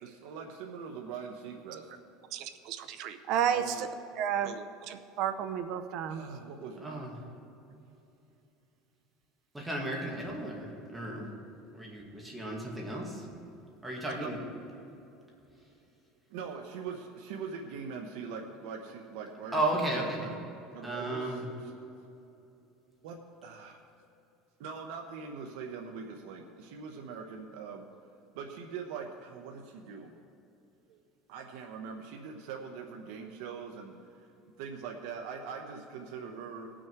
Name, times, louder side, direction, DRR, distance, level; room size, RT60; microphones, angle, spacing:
voice 1, 0.0-1.9 3.5-3.9 6.1-7.2 14.2-14.3 16.3-20.4 20.7-21.2 23.0-23.8 24.6-27.9 28.3-30.1 31.3-34.3 34.6-36.7, right 5 dB, 75° right, 2 dB, 0.9 m, -42 dB
voice 2, 2.3-3.9 4.2-6.2, right 8 dB, 50° right, 9 dB, 0.6 m, -32 dB
voice 3, 6.8-7.1 9.5-11.3 11.7-13.3 13.8-14.4 19.5-20.3 20.8-21.4, right 1 dB, 10° right, -2 dB, 1.9 m, -34 dB
18.5 x 6.3 x 4.6 m, 2.9 s
cardioid pair, 150°, 0 cm